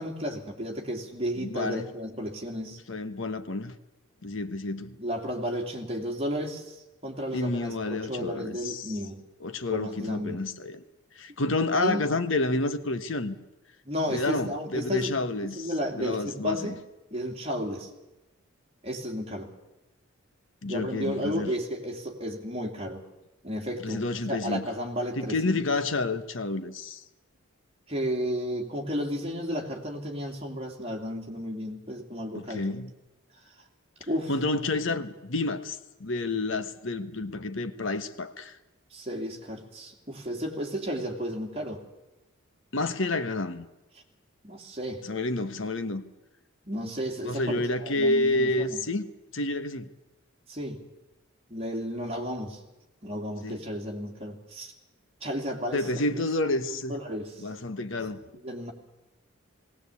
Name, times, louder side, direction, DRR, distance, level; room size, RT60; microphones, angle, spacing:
voice 1, 0.0-2.8 5.0-6.8 7.0-9.2 9.7-10.4 11.7-12.0 13.8-15.2 15.5-16.8 17.1-17.9 18.8-19.5 20.7-23.0 23.4-24.0 24.3-25.6 27.9-32.7 34.1-34.3 38.9-41.8 44.4-45.0 46.7-48.8 50.5-50.8 51.5-52.6 53.0-54.7 55.2-55.9 56.1-56.2 56.9-57.3 58.4-58.7, equal, 30° right, 2.7 m, -33 dB
voice 2, 1.4-1.9 2.9-3.7 4.2-5.0 7.3-8.9 9.4-10.8 11.1-13.4 14.1-16.7 20.6-21.5 23.8-24.7 25.2-27.0 32.3-32.9 34.3-38.6 42.7-43.7 45.0-46.0 47.2-49.1 49.3-49.9 53.4-53.6 55.7-57.0 57.4-58.2, left 2 dB, 60° left, 1.2 m, -29 dB
19.0 x 18.0 x 8.3 m
head